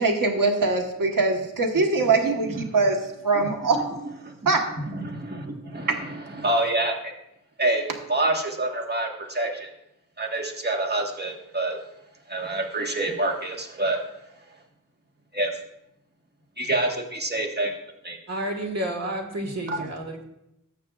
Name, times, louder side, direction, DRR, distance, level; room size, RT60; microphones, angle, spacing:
voice 1, 0.0-4.0 4.4-4.7 5.9-6.0, right 3 dB, 75° right, 2 dB, 1.3 m, -23 dB
voice 2, 3.3-3.8 4.2-4.5 4.9-7.1 7.6-9.7 10.2-11.8 12.3-14.6 15.3-15.6 16.6-18.2 19.7-19.9, right 2 dB, 30° right, 1 dB, 1.4 m, -28 dB
voice 3, 18.3-20.2, right 1 dB, 50° right, 3 dB, 1.6 m, -30 dB
17.5 x 6.7 x 2.4 m, 0.85 s
wide cardioid pair, 95°, 34 cm